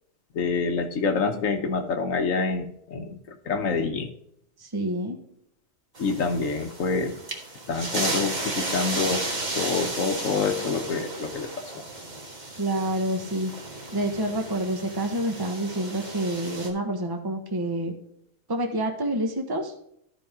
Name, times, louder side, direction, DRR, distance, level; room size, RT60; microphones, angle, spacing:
voice 1, 0.3-4.1 6.0-7.2 7.7-9.3 9.5-11.8, left 4 dB, 85° left, 4 dB, 1.3 m, -27 dB
voice 2, 4.6-5.2 12.6-13.5 13.9-17.9 18.5-19.7, right 1 dB, 20° right, 4 dB, 1.1 m, -28 dB
sound 1, 6.0-16.7, right 2 dB, 35° right, 1.6 m, -34 dB
13.0 x 5.2 x 3.6 m, 0.74 s
omnidirectional pair, 1.3 m